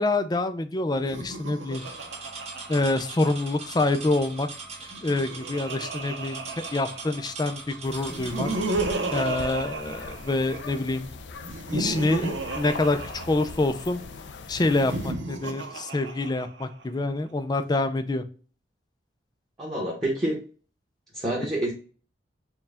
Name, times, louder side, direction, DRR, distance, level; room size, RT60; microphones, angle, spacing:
voice 1, 0.0-1.8 2.7-4.5 5.0-6.4 6.7-8.5 9.1-11.1 11.7-14.0 14.5-18.2, left 2 dB, 20° left, 9 dB, 0.4 m, -26 dB
Laughter, 1.0-3.7 4.8-7.4 8.1-10.8 11.4-13.8 14.7-16.8, right 2 dB, 85° right, 0.8 m, -34 dB
sound 1, 1.7-9.5, right 4 dB, 35° right, 1.0 m, -41 dB
sound 2, 7.8-15.1, left 4 dB, 75° left, 0.5 m, -40 dB
voice 2, 19.6-20.4 21.1-21.7, right 1 dB, 20° right, -5 dB, 1.1 m, -27 dB
4.4 x 2.3 x 3.4 m, 0.39 s
head